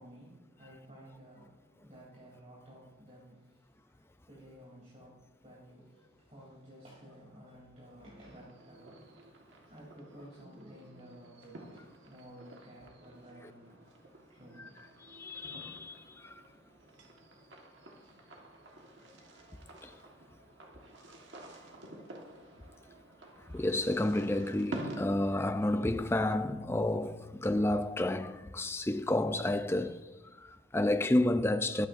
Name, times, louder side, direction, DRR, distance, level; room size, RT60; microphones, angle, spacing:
voice 1, 0.0-9.4 9.6-13.7 14.3-14.8, equal, 35° right, 3.2 m, -54 dB
sound 1, 8.2-25.3, right 1 dB, 65° right, 1.5 m, -49 dB
voice 2, 15.1-16.3 19.8-19.9 23.5-30.1 30.4-31.9, left 1 dB, 10° left, 0.4 m, -30 dB
21.5 x 8.7 x 2.6 m
head